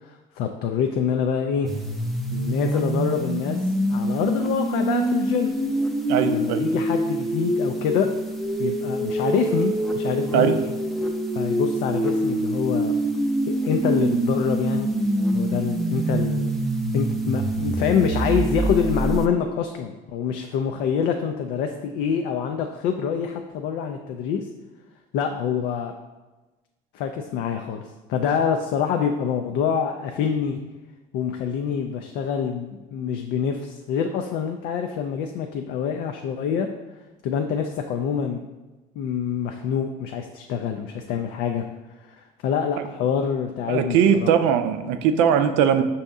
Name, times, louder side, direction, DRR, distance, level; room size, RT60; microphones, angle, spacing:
voice 1, 0.0-1.7 2.3-5.5 6.2-8.1 8.6-10.7 11.3-12.9 13.5-14.9 15.3-16.5 16.9-24.5 25.1-25.9 26.9-30.6 31.1-36.7 37.2-38.4 39.0-41.7 42.2-44.3, left 7 dB, 70° left, 5 dB, 0.4 m, -26 dB
sound 1, 1.7-19.3, right 1 dB, ahead, 0.5 m, -25 dB
voice 2, 6.1-6.7 10.3-10.6 43.7-45.8, right 8 dB, 80° right, 8 dB, 0.4 m, -20 dB
5.3 x 2.8 x 3.5 m, 1.1 s
supercardioid pair, 80°, 18 cm